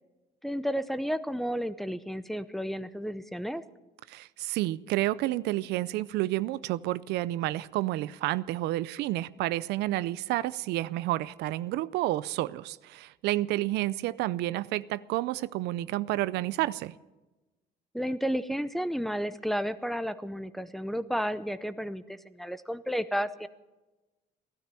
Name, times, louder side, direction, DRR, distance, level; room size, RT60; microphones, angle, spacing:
voice 1, 0.4-3.6 17.9-23.5, equal, ahead, 0.7 m, -32 dB
voice 2, 4.1-16.9, right 16 dB, 80° right, 0.5 m, -30 dB
16.0 x 12.5 x 6.9 m
cardioid pair, 110°, 17 cm